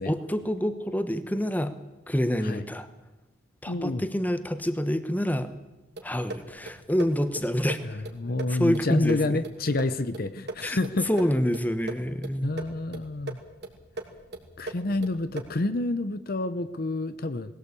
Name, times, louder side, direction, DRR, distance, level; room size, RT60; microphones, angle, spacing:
voice 1, 0.1-1.7 2.1-2.9 3.6-5.5 6.0-8.0 8.5-9.4 10.6-10.8 11.1-12.5, equal, 10° left, 10 dB, 1.1 m, -27 dB
voice 2, 3.7-4.0 7.8-11.1 12.4-13.4 14.6-17.5, left 2 dB, 50° left, 12 dB, 0.8 m, -29 dB
sound 1, 5.9-15.7, right 2 dB, 55° right, 2.8 m, -41 dB
20.5 x 16.5 x 8.4 m, 1.0 s
head